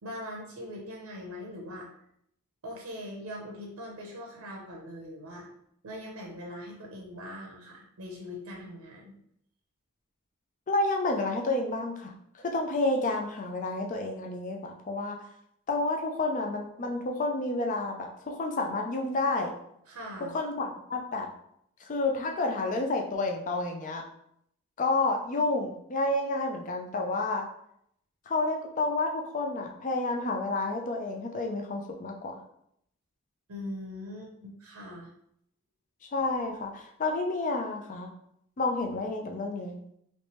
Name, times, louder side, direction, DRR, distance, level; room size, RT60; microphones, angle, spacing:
voice 1, 0.0-1.9 2.6-5.5 5.8-9.1 19.9-20.3 33.5-35.1, left 1 dB, 85° right, -1 dB, 0.7 m, -41 dB
voice 2, 10.7-15.2 15.7-19.5 20.3-21.3 21.9-24.0 24.8-27.5 28.3-32.4 36.1-38.1 38.6-39.8, left 2 dB, 35° left, 2 dB, 0.4 m, -30 dB
3.2 x 3.1 x 2.9 m, 0.72 s
head